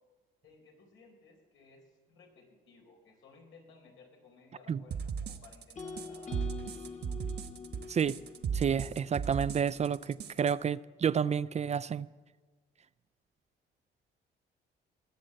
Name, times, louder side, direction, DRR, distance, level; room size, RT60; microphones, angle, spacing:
voice 1, 0.4-7.2, left 4 dB, 85° left, 4.2 m, -59 dB
sound 1, 4.9-10.5, right 7 dB, 55° right, 1.2 m, -37 dB
sound 2, 5.8-9.9, left 5 dB, 35° left, 1.4 m, -46 dB
voice 2, 8.5-12.1, right 7 dB, 35° right, 0.4 m, -30 dB
20.0 x 7.8 x 7.7 m
cardioid pair, 90°, 20 cm